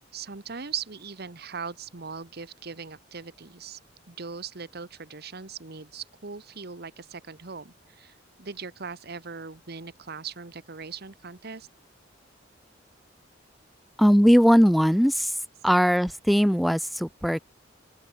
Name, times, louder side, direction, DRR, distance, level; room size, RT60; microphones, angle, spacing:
voice 1, 0.1-3.8 4.1-11.7, right 5 dB, 55° right, 1.3 m, -39 dB
voice 2, 14.0-15.3 15.6-17.4, equal, ahead, 0.9 m, -19 dB
open air
head